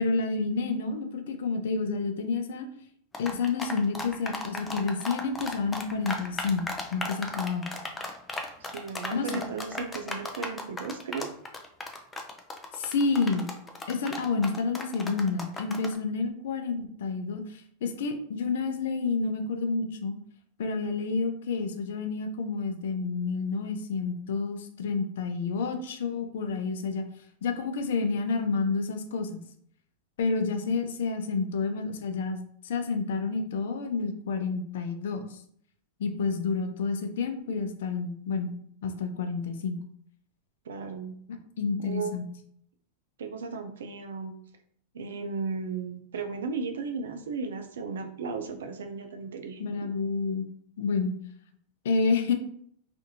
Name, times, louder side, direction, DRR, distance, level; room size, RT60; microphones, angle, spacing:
voice 1, 0.0-2.7 3.2-7.7 9.1-9.4 12.7-13.5 13.9-20.1 20.6-27.0 27.4-29.3 30.2-35.4 36.0-38.5 38.8-39.8 41.6-42.3 49.6-50.4 50.8-51.2 51.8-52.3, left 4 dB, 75° left, 6 dB, 0.4 m, -29 dB
sound 1, 3.1-16.0, left 2 dB, 15° left, 0.4 m, -35 dB
voice 2, 8.6-11.3 40.7-41.1 41.8-42.1 43.2-44.3 44.9-49.7, right 4 dB, 80° right, 6 dB, 0.4 m, -35 dB
2.6 x 2.5 x 2.7 m, 0.65 s
hypercardioid pair, 110°, 0 cm